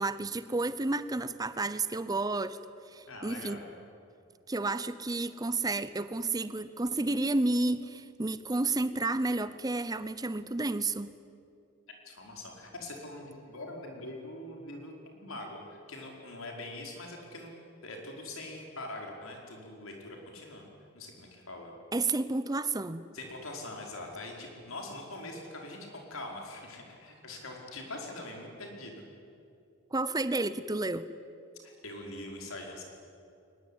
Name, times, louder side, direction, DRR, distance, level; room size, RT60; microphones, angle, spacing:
voice 1, 0.0-2.6 2.9-3.6 4.5-11.1 21.9-23.1 29.9-31.1, right 2 dB, 20° right, 14 dB, 0.6 m, -31 dB
voice 2, 3.1-3.8 12.0-17.5 17.8-20.7 20.9-21.7 23.1-29.0 31.8-32.8, left 2 dB, 80° left, 1 dB, 5.0 m, -43 dB
23.0 x 20.5 x 9.9 m, 2.6 s
head